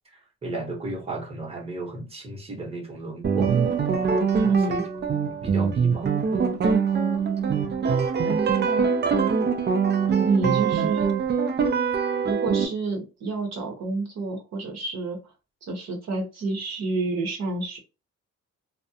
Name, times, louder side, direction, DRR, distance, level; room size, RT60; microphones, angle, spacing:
voice 1, 0.1-3.5 4.4-4.8 5.4-6.1, right 2 dB, 20° right, 0.9 m, -34 dB
sound 1, 3.2-12.7, right 6 dB, 35° right, 0.5 m, -23 dB
voice 2, 4.4-4.8 8.2-8.9 10.2-11.1 12.2-15.3 15.6-17.8, right 3 dB, 60° right, 0.9 m, -29 dB
2.3 x 2.1 x 2.7 m
cardioid pair, 90°, 30 cm